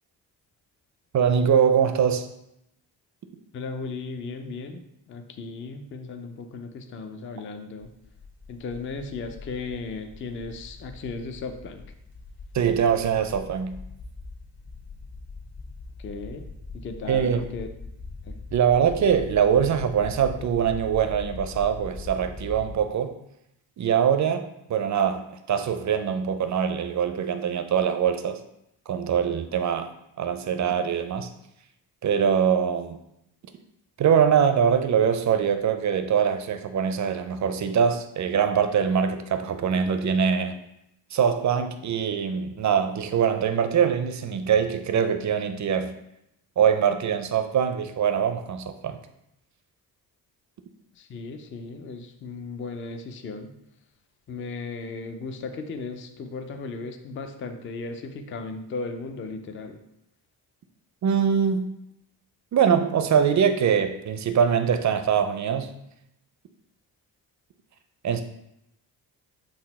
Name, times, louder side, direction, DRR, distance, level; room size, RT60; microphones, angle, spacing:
voice 1, 1.1-2.3 12.5-13.8 17.1-17.4 18.5-23.1 23.8-24.4 24.7-28.4 28.9-29.9 30.2-31.3 32.0-33.0 34.0-40.6 41.1-45.9 46.6-49.0 61.0-61.7 62.5-65.8 68.0-68.2, right 7 dB, 40° right, 8 dB, 0.5 m, -23 dB
voice 2, 3.5-4.8 5.1-7.9 8.5-11.8 16.0-16.4 16.7-17.7 18.3-18.4 51.0-53.5 54.3-59.8, left 4 dB, 25° left, 7 dB, 0.4 m, -36 dB
sound 1, 7.8-22.7, left 3 dB, 45° left, 1.2 m, -41 dB
3.9 x 2.0 x 4.0 m, 0.82 s
hypercardioid pair, 45°, 48 cm